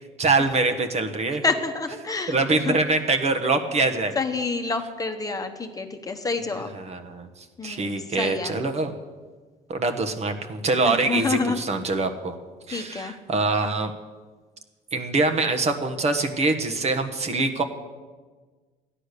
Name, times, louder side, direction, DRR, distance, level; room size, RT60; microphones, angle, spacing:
voice 1, 0.2-1.4 2.3-4.1 6.7-7.3 7.6-8.9 9.7-12.3 12.7-13.9 14.9-17.6, right 3 dB, 40° right, 6 dB, 1.3 m, -24 dB
voice 2, 1.4-2.8 4.1-6.7 7.6-8.6 10.8-11.6 12.7-13.2, left 4 dB, 20° left, 5 dB, 1.2 m, -28 dB
13.0 x 10.0 x 6.7 m, 1.4 s
cardioid pair, 110°, 17 cm